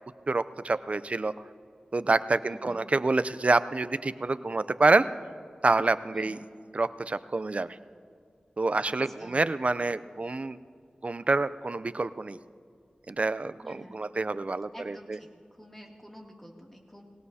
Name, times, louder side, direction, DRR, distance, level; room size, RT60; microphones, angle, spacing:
voice 1, 0.3-1.3 1.9-5.1 5.6-6.4 6.7-7.7 8.6-10.6 11.0-12.4 13.1-15.2, right 3 dB, 45° right, 15 dB, 0.5 m, -27 dB
voice 2, 2.4-2.8 6.1-6.4 8.8-9.5 13.6-14.0 14.7-17.0, equal, 10° left, -1 dB, 2.5 m, -49 dB
21.0 x 17.5 x 2.8 m, 2.2 s
wide cardioid pair, 50°, 3 cm